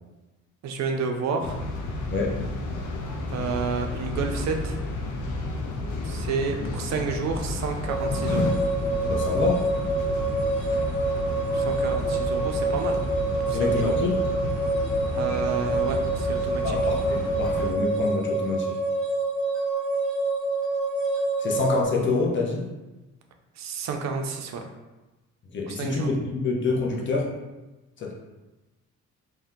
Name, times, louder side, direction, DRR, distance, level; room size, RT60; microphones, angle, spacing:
voice 1, 0.6-1.6 3.3-4.8 6.0-8.5 11.5-13.0 13.5-13.9 15.2-16.8 23.6-24.6 25.7-26.1, right 5 dB, 65° right, 4 dB, 0.5 m, -30 dB
sound 1, 1.4-17.7, left 2 dB, 85° left, 0.5 m, -31 dB
voice 2, 2.1-2.4 6.6-6.7 9.0-9.7 13.5-14.1 16.6-18.8 21.4-22.7 25.5-27.3 28.0-28.1, left 3 dB, 40° left, -2 dB, 0.7 m, -27 dB
sound 2, 7.9-21.9, right 2 dB, ahead, 0.9 m, -27 dB
2.6 x 2.2 x 3.5 m, 1.1 s
cardioid pair, 90°, 30 cm